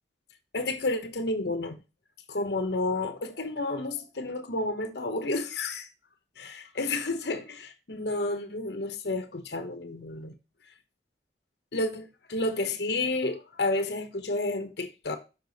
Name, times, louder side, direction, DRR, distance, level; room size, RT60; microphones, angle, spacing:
voice 1, 0.5-1.8 2.3-5.9 6.4-10.4 11.7-15.2, left 2 dB, 65° left, 1.0 m, -31 dB
6.8 x 5.3 x 4.0 m
head